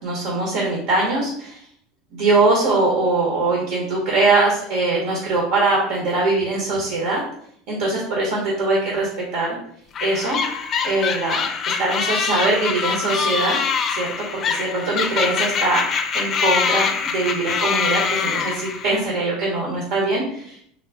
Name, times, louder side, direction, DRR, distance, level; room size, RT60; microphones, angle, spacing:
voice 1, 0.0-1.6 2.1-7.2 7.7-9.6 10.0-10.4 10.8-11.4 11.8-13.6 13.9-15.8 16.1-20.6, right 2 dB, 70° right, -2 dB, 1.1 m, -22 dB
sound 1, 9.9-19.0, left 6 dB, 35° left, 0.4 m, -24 dB
3.7 x 2.1 x 3.5 m, 0.68 s
supercardioid pair, 135°, 0 cm